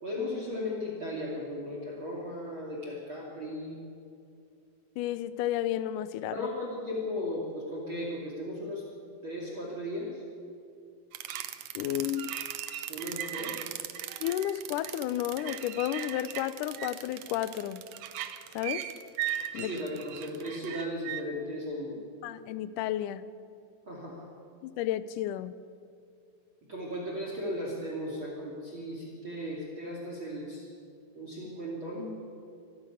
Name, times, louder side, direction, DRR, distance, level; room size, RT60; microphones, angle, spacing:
voice 1, 0.0-3.8 6.3-8.8 9.2-10.2 12.9-13.7 19.5-22.0 23.9-24.3 26.7-30.7 31.1-32.1, left 1 dB, 35° right, 3.2 m, -36 dB
voice 2, 5.0-6.5 11.8-12.4 14.2-17.8 18.5-18.9 19.5-19.8 22.2-23.3 24.6-25.5, left 12 dB, 80° left, 2.0 m, -32 dB
sound 1, 11.1-21.2, right 11 dB, 70° right, 1.7 m, -38 dB
26.0 x 11.5 x 9.8 m
omnidirectional pair, 4.2 m